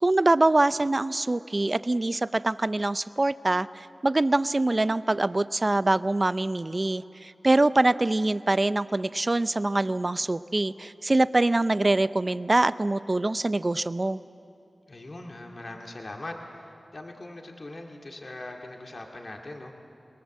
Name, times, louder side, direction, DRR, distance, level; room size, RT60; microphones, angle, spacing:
voice 1, 0.0-14.2, right 2 dB, 40° right, 15 dB, 0.6 m, -24 dB
voice 2, 14.9-19.7, left 2 dB, 55° left, 1 dB, 2.2 m, -41 dB
28.0 x 19.0 x 7.6 m, 2.7 s
cardioid pair, 45°, 0 cm